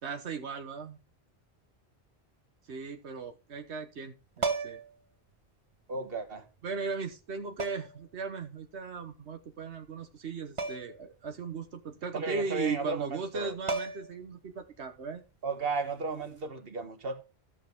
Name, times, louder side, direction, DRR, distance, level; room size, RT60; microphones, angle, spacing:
voice 1, 0.0-1.0 2.7-4.8 6.6-15.2, right 5 dB, 80° right, 1.4 m, -37 dB
sound 1, 4.4-5.0 6.3-6.4 7.6-8.0 10.6-11.0 11.3-11.4 13.3-13.4 13.7-14.3 16.2-16.4, right 3 dB, 30° right, 1.0 m, -34 dB
voice 2, 5.9-6.5 12.1-13.5 15.4-17.2, right 3 dB, 60° right, 1.6 m, -34 dB
14.0 x 6.3 x 3.6 m
omnidirectional pair, 1.1 m